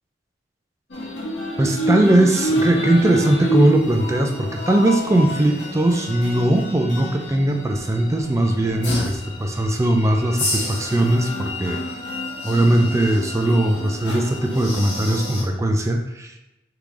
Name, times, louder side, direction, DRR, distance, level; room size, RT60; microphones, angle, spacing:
sound 1, 0.9-15.4, left 1 dB, 65° left, 1.2 m, -28 dB
voice 1, 1.6-11.8 12.4-16.3, right 1 dB, 15° right, 3 dB, 0.4 m, -19 dB
3.8 x 3.5 x 3.2 m, 0.94 s
head